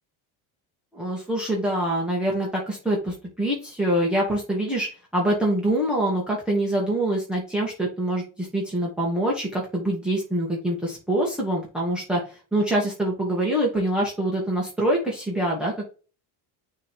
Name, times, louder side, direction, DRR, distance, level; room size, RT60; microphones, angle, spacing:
voice 1, 0.9-15.9, right 1 dB, ahead, -4 dB, 2.2 m, -25 dB
6.5 x 3.8 x 4.6 m, 0.35 s
cardioid pair, 120°, 49 cm